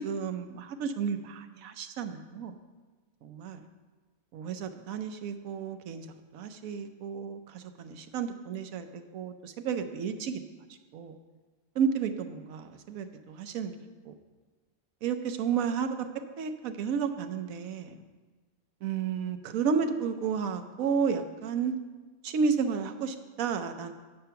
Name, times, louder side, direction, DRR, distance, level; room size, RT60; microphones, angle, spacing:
voice 1, 0.0-2.5 3.2-3.6 4.3-6.1 6.3-8.9 9.1-10.4 10.9-11.2 11.8-13.7 14.1-14.2 15.0-15.9 16.4-17.9 18.8-21.7 22.2-23.9, right 6 dB, 85° right, 8 dB, 1.1 m, -32 dB
8.0 x 6.7 x 5.7 m, 1.3 s
omnidirectional pair, 1.4 m